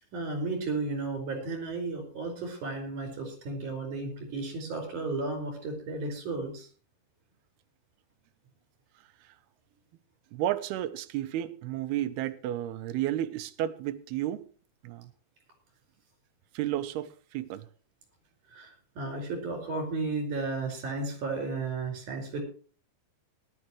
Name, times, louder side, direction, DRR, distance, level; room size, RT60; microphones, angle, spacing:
voice 1, 0.1-6.7 18.5-22.4, right 3 dB, 55° right, 6.3 m, -34 dB
voice 2, 10.3-14.5 14.8-15.1 16.5-17.7, right 12 dB, 85° right, 2.9 m, -32 dB
19.0 x 12.0 x 3.1 m
omnidirectional pair, 4.4 m